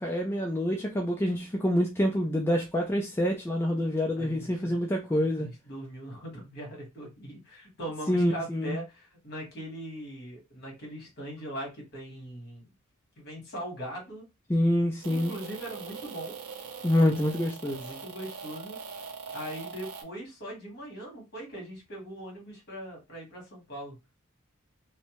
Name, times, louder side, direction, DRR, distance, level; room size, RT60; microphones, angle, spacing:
voice 1, 0.0-5.5 8.1-8.8 14.5-15.3 16.8-17.8, left 1 dB, 10° left, 0.4 m, -26 dB
voice 2, 4.2-4.8 5.4-12.7 13.2-14.3 15.1-16.4 17.7-18.8 19.3-24.0, right 1 dB, 50° left, 1.4 m, -40 dB
sound 1, 15.0-20.0, right 5 dB, 85° right, 0.6 m, -42 dB
2.6 x 2.1 x 2.9 m
head